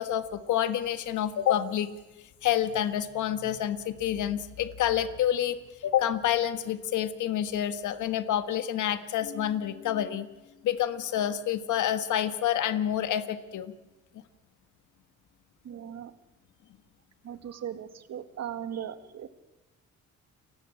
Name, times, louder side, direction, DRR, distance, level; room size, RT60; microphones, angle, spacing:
voice 1, 0.0-1.9 2.4-10.3 10.6-13.7, left 11 dB, 75° left, 11 dB, 1.6 m, -28 dB
voice 2, 15.7-16.1 17.3-19.3, right 9 dB, 60° right, 10 dB, 2.0 m, -38 dB
30.0 x 16.5 x 8.8 m, 1.1 s
cardioid pair, 90°, 30 cm